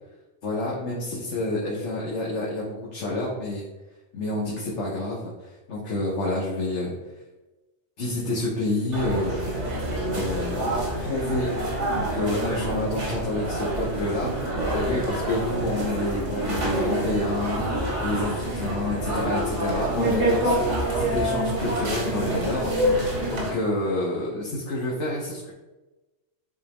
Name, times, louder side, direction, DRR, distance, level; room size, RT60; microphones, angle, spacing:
voice 1, 0.4-3.6 4.1-6.9 8.0-9.3 10.1-10.7 11.0-11.5 11.9-14.3 14.7-17.6 18.0-22.7 23.0-25.5, left 1 dB, 80° left, -4 dB, 1.5 m, -28 dB
sound 1, 8.9-23.5, right 1 dB, 85° right, 2.1 m, -27 dB
9.2 x 3.7 x 3.5 m, 1.1 s
omnidirectional pair, 1.2 m